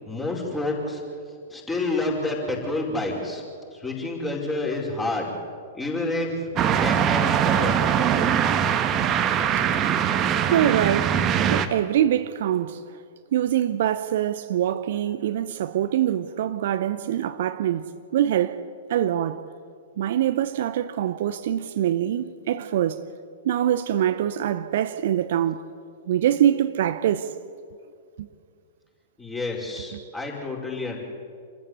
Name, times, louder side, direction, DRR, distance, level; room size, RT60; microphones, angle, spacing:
voice 1, 0.0-1.0 1.5-5.3 5.7-6.5 6.8-7.8 29.2-31.0, left 2 dB, 10° left, 5.1 m, -29 dB
sound 1, 6.6-11.7, right 8 dB, 30° right, 1.3 m, -22 dB
voice 2, 10.5-11.2 11.5-12.8 13.3-18.6 18.9-19.5 20.0-23.1 23.4-25.6 26.1-27.3 28.2-28.3 29.9-30.0, right 11 dB, 55° right, 0.8 m, -24 dB
27.0 x 14.5 x 8.2 m
figure-of-eight pair, 105°, 0 cm